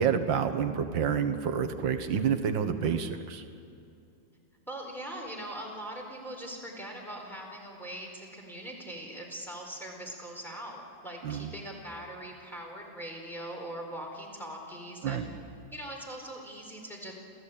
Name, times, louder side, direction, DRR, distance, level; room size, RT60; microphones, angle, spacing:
voice 1, 0.0-3.4 11.2-11.5 15.0-15.3, right 7 dB, 80° right, 8 dB, 2.0 m, -28 dB
voice 2, 4.7-15.2 15.7-17.1, right 1 dB, ahead, -1 dB, 4.4 m, -41 dB
28.0 x 15.5 x 8.8 m, 2.6 s
omnidirectional pair, 2.0 m